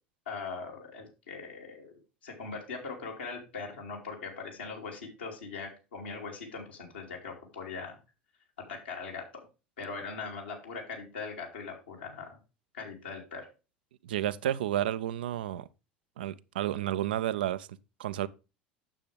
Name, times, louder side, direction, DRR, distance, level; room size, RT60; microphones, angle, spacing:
voice 1, 0.3-1.9 2.2-8.0 8.7-9.4 9.8-12.4 12.7-13.5, left 4 dB, 75° left, 2.9 m, -40 dB
voice 2, 14.0-15.7 16.2-18.3, right 12 dB, 70° right, 0.5 m, -31 dB
9.2 x 7.2 x 3.4 m
figure-of-eight pair, 70°, 5 cm